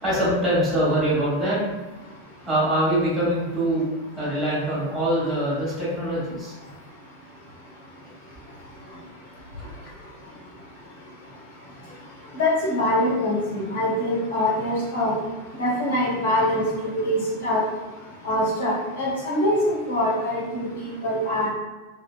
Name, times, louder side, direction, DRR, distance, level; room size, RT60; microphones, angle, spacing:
voice 1, 0.0-1.7 2.5-3.9 4.1-6.5 9.6-9.7 11.8-11.9, right 1 dB, 10° right, -9 dB, 1.3 m, -23 dB
voice 2, 12.4-15.1 15.6-17.6 18.2-21.5, left 1 dB, 60° left, -5 dB, 0.9 m, -24 dB
2.6 x 2.2 x 2.3 m, 1.2 s
figure-of-eight pair, 90°, 0 cm